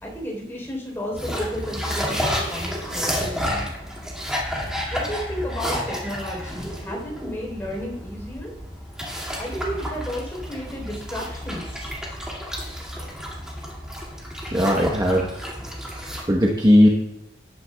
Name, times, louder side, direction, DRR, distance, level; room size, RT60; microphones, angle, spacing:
voice 1, 0.0-3.6 4.9-8.5 9.4-11.9, equal, 15° left, -2 dB, 3.6 m, -33 dB
sound 1, 1.1-16.2, equal, 5° right, 2.1 m, -31 dB
voice 2, 14.5-15.4 15.9-16.9, equal, 20° right, -1 dB, 1.0 m, -18 dB
18.5 x 9.4 x 2.3 m, 0.85 s
head